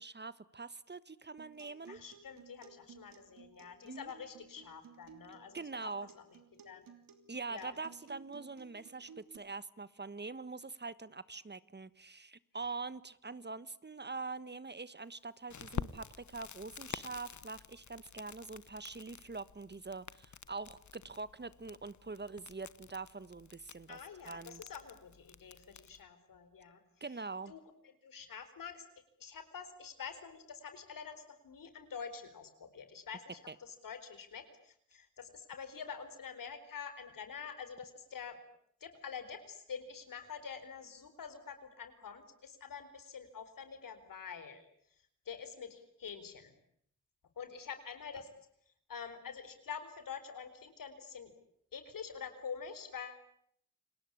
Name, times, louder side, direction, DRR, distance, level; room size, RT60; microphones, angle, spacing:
voice 1, 0.0-2.0 3.8-4.1 5.5-6.1 7.3-24.0 24.2-24.6 27.0-27.5 33.5-33.6, right 4 dB, 30° right, 17 dB, 1.3 m, -44 dB
Acoustic guitar, 1.4-9.4, right 6 dB, 90° right, 3.0 m, -58 dB
voice 2, 1.9-5.9 6.1-6.2 6.5-6.9 7.5-7.7 23.9-26.8 27.5-27.6 28.0-28.8 29.2-38.3 38.8-44.7 45.3-46.5 47.4-48.3 48.9-51.3 51.7-53.2, left 6 dB, 80° left, 10 dB, 4.4 m, -47 dB
Crackle, 15.5-26.0, left 7 dB, 60° left, 1.3 m, -48 dB
29.0 x 19.5 x 9.8 m, 0.70 s
cardioid pair, 55°, 33 cm